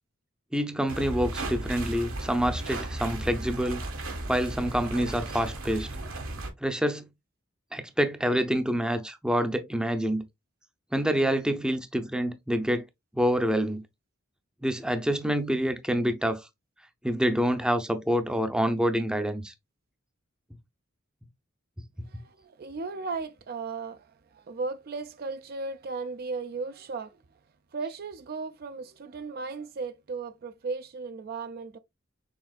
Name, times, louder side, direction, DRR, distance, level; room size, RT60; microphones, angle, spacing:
voice 1, 0.5-3.8 4.3-5.9 6.6-7.1 7.7-10.2 10.9-12.9 13.1-13.8 14.6-16.4 17.0-19.5, equal, 5° right, 0.6 m, -27 dB
sound 1, 0.9-6.5, right 2 dB, 85° right, 1.8 m, -35 dB
voice 2, 22.1-24.1 24.3-27.2 27.7-31.8, right 4 dB, 50° right, 0.5 m, -36 dB
6.3 x 3.4 x 2.4 m
head